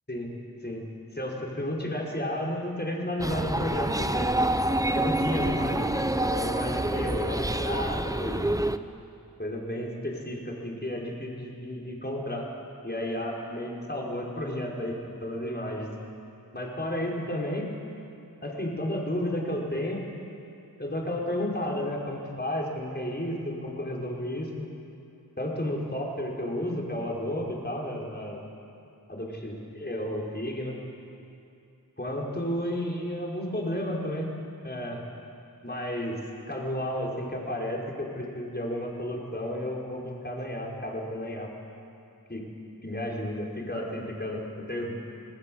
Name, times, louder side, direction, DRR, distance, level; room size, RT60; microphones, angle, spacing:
voice 1, 1.1-4.3 4.9-8.5 9.4-12.5 12.8-15.9 16.5-17.7 18.4-20.0 20.8-24.7 25.4-28.4 29.1-30.8 32.0-34.3 34.6-35.0 35.6-36.2 36.5-41.5 42.3-42.5 42.8-44.9, left 1 dB, 25° left, -2 dB, 5.2 m, -32 dB
sound 1, 3.2-8.8, right 1 dB, 10° right, 0.8 m, -27 dB
27.0 x 19.0 x 7.9 m, 2.7 s
wide cardioid pair, 45°, 37 cm